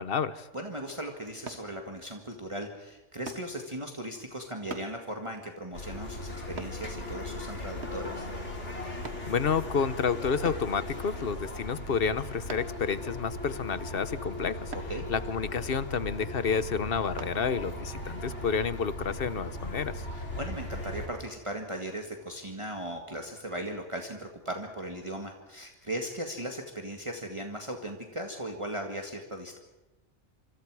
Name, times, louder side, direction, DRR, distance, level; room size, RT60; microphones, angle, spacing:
voice 1, 0.0-0.5 9.3-14.7 15.1-20.0, left 6 dB, 55° left, 14 dB, 1.1 m, -30 dB
voice 2, 0.5-8.3 14.7-15.1 20.1-29.6, right 1 dB, 25° right, 2 dB, 1.9 m, -38 dB
sound 1, 1.5-1.7 3.3-3.5 4.7-4.9 6.6-6.8 7.8-8.1 9.0-9.3 10.4-10.7 12.5-12.8 14.7-14.9 17.2-17.4 17.9-18.1, right 4 dB, 70° right, 1.8 m, -41 dB
sound 2, 5.7-21.1, left 1 dB, 85° left, 4.1 m, -38 dB
26.5 x 25.5 x 4.9 m, 1.0 s
omnidirectional pair, 1.2 m